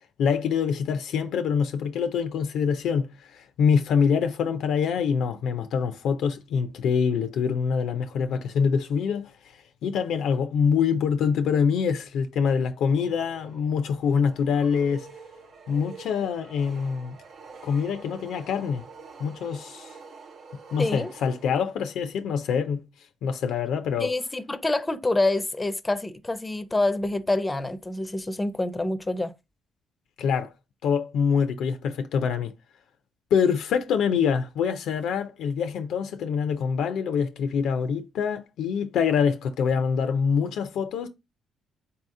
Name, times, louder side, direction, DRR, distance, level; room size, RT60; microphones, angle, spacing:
voice 1, 0.2-9.3 9.8-15.1 15.7-17.2 17.6-18.8 19.2-19.9 20.7-22.8 23.2-24.1 30.2-30.5 30.8-32.5 33.3-41.1, left 6 dB, 80° left, 0.5 m, -25 dB
sound 1, 12.8-21.9, right 5 dB, 65° right, 0.8 m, -47 dB
voice 2, 20.8-21.1 24.0-29.3, left 2 dB, 15° left, 0.5 m, -26 dB
4.0 x 2.7 x 3.6 m
cardioid pair, 90°, 0 cm